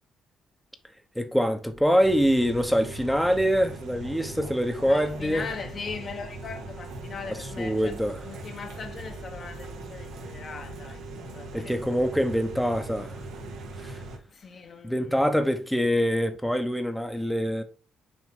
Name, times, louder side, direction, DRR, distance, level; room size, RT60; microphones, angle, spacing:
voice 1, 1.1-5.5 7.6-8.2 11.5-13.2 13.8-14.0 14.8-17.6, equal, ahead, 0.9 m, -25 dB
sound 1, 2.0-14.2, right 2 dB, 85° right, 1.7 m, -40 dB
voice 2, 4.8-11.0 11.3-11.8 14.3-15.4, left 5 dB, 50° left, 1.1 m, -40 dB
6.3 x 4.0 x 3.7 m
cardioid pair, 90°, 0 cm